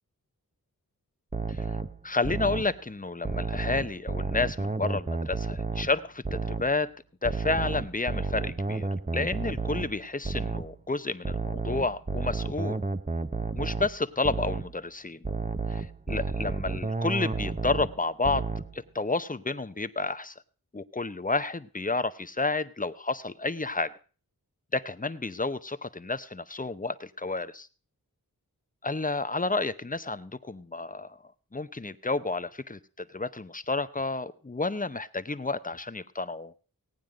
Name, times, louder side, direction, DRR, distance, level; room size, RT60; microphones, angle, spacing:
sound 1, 1.3-2.8 3.3-6.0 6.3-6.8 7.3-10.8 11.3-14.0 14.3-14.8 15.2-18.0 18.2-18.8, right 3 dB, 20° right, 0.8 m, -31 dB
voice 1, 2.0-6.9 7.2-8.9 9.1-12.8 13.5-15.2 15.7-18.5 18.7-20.3 20.7-23.9 24.7-27.7 28.8-31.2 31.5-32.8 33.1-36.5, left 3 dB, 25° left, 13 dB, 0.8 m, -30 dB
17.5 x 9.3 x 5.1 m, 0.38 s
wide cardioid pair, 55°, 37 cm